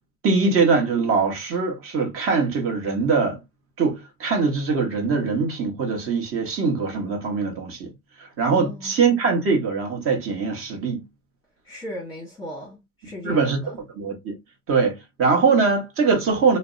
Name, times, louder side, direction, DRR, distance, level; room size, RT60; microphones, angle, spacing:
voice 1, 0.2-3.4 3.8-7.9 8.2-11.0 13.2-13.6 13.9-14.3 14.7-16.6, right 4 dB, 45° right, 1.0 m, -22 dB
voice 2, 8.5-8.9 11.6-13.7, left 1 dB, 10° left, 0.9 m, -37 dB
2.5 x 2.1 x 2.4 m
supercardioid pair, 115°, 32 cm